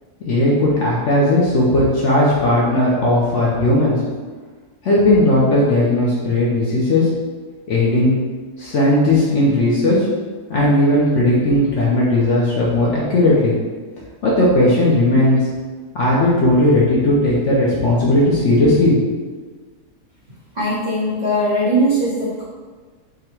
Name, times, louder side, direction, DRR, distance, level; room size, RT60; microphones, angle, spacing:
voice 1, 0.2-4.0 4.8-7.1 7.7-8.1 8.6-10.1 10.5-13.5 14.2-15.4 15.9-18.9, left 1 dB, 60° left, -6 dB, 0.9 m, -16 dB
voice 2, 20.5-22.4, right 1 dB, 35° right, -10 dB, 0.9 m, -19 dB
3.8 x 2.2 x 4.3 m, 1.4 s
omnidirectional pair, 1.7 m